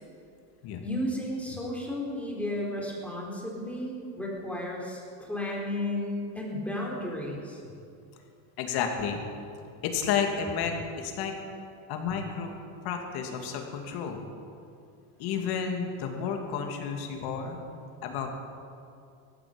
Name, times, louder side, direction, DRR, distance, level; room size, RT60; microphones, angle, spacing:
voice 1, 0.8-7.6, left 1 dB, 5° left, -3 dB, 4.0 m, -33 dB
voice 2, 8.6-9.2 9.8-11.3 11.9-12.5 12.8-14.2 15.2-17.6 18.0-18.3, left 7 dB, 65° left, 3 dB, 2.6 m, -31 dB
18.0 x 14.5 x 5.2 m, 2.5 s
supercardioid pair, 120°, 42 cm